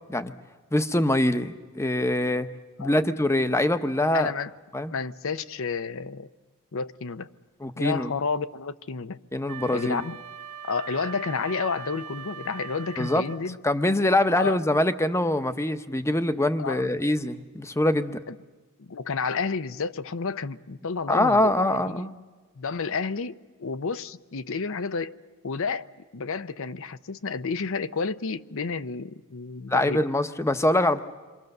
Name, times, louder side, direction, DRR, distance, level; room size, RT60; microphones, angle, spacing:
voice 1, 0.7-2.5 2.8-4.3 4.7-4.9 7.6-8.1 9.3-10.0 13.0-13.2 13.6-18.2 21.1-22.1 29.7-31.0, left 1 dB, 15° left, 0.8 m, -24 dB
voice 2, 4.1-4.5 4.9-6.3 6.7-7.3 7.8-9.2 9.7-10.2 10.7-13.6 14.4-14.6 16.6-16.9 18.3-18.4 18.8-21.6 21.9-22.1 22.6-25.2 25.4-30.1, left 4 dB, 65° left, 0.7 m, -31 dB
Wind instrument woodwind instrument, 9.5-13.5, right 8 dB, 90° right, 1.5 m, -41 dB
28.5 x 24.5 x 6.7 m
head